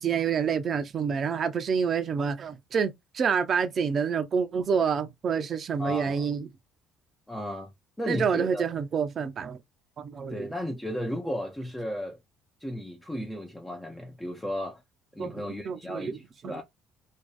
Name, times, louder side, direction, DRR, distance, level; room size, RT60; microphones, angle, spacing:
voice 1, 0.0-6.5 8.1-9.6 10.0-10.5 15.2-15.3 15.7-16.2 16.4-16.6, right 6 dB, 45° right, 0.5 m, -28 dB
voice 2, 5.8-6.3 7.3-7.7 8.0-8.6 10.3-12.2 12.6-14.8 15.1-16.6, equal, 10° left, 0.6 m, -34 dB
2.6 x 2.3 x 2.3 m
supercardioid pair, 70°, 0 cm